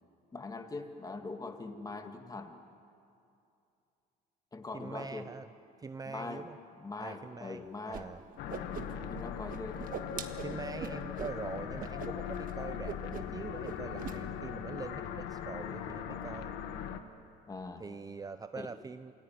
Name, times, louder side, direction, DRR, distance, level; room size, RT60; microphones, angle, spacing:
voice 1, 0.3-2.6 4.5-5.3 6.1-6.5 6.8-8.1 9.1-9.8 17.5-17.8 18.6-18.7, left 3 dB, 20° left, 5 dB, 2.1 m, -42 dB
voice 2, 4.7-5.5 5.8-6.6 7.0-8.2 10.4-16.5 17.8-19.1, right 4 dB, 20° right, 11 dB, 0.6 m, -43 dB
Whoosh swoosh swish, 7.9-8.0 8.3-9.2 9.5-11.4 11.8-12.1 12.3-12.5 12.9-13.4 13.6-14.2, right 9 dB, 55° right, 1.6 m, -41 dB
sound 1, 8.4-17.0, left 9 dB, 90° left, 1.5 m, -40 dB
28.0 x 18.0 x 9.4 m, 2.6 s
cardioid pair, 110°, 17 cm